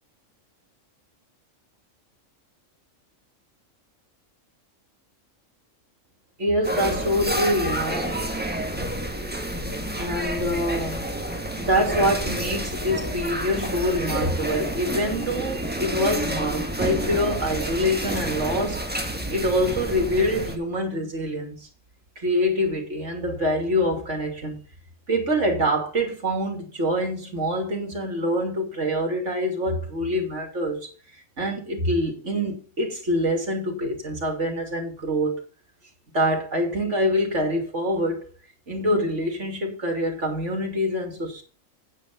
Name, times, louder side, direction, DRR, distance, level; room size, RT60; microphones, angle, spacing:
voice 1, 6.4-8.2 10.0-11.1 11.6-18.8 19.3-21.7 22.2-24.6 25.1-30.9 31.4-35.4 36.1-38.3 38.7-41.4, equal, 60° right, 3.2 m, -25 dB
sound 1, 6.6-20.6, right 1 dB, 5° right, 1.5 m, -29 dB
9.1 x 8.3 x 5.4 m
omnidirectional pair, 1.4 m